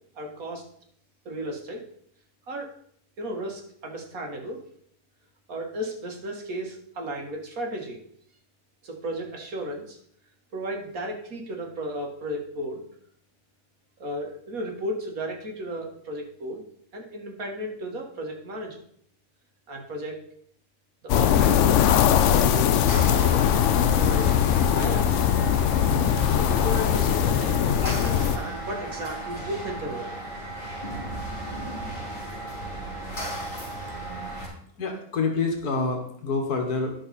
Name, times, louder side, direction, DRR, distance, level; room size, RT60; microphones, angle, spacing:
voice 1, 0.2-0.6 1.3-1.8 2.5-2.7 3.2-4.6 5.5-8.0 8.8-10.0 10.5-12.8 14.0-16.6 16.9-18.8 19.7-20.3 21.0-21.8 22.2-24.4 24.7-25.3 26.0-30.2, equal, 65° right, 1 dB, 2.0 m, -34 dB
sound 1, 21.1-28.4, left 9 dB, 65° left, 0.8 m, -21 dB
sound 2, 22.9-34.5, right 1 dB, 35° left, 3.9 m, -34 dB
voice 2, 34.8-36.9, left 4 dB, 85° left, 3 dB, 1.9 m, -27 dB
11.0 x 6.4 x 4.2 m, 0.64 s
omnidirectional pair, 1.6 m